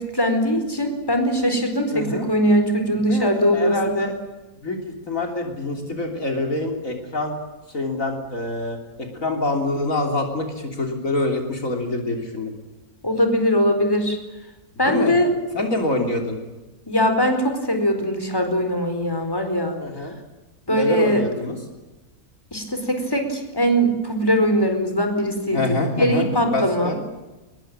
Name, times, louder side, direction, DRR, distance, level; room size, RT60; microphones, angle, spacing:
voice 1, 0.0-4.1 13.0-14.2 14.8-15.3 16.9-19.8 20.7-21.2 22.5-26.9, equal, 15° left, 6 dB, 4.6 m, -21 dB
voice 2, 1.9-2.3 2.9-4.1 4.6-7.3 7.7-12.5 14.9-15.2 15.5-16.4 19.8-20.2 20.7-21.6 25.5-27.0, left 2 dB, 60° left, 3 dB, 3.7 m, -26 dB
24.0 x 21.5 x 8.9 m, 1.1 s
omnidirectional pair, 1.6 m